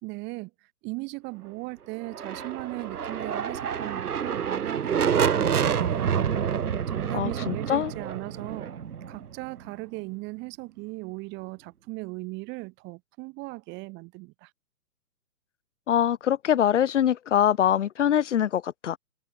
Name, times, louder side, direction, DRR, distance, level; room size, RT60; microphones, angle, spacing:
voice 1, 0.0-0.5 0.8-6.3 6.9-8.7 9.1-14.5, right 25 dB, 25° right, 3.4 m, -38 dB
sound 1, 2.0-9.8, right 8 dB, 70° right, 1.7 m, -28 dB
voice 2, 7.1-7.9 15.9-19.0, left 10 dB, 50° left, 0.6 m, -23 dB
figure-of-eight pair, 140°, 47 cm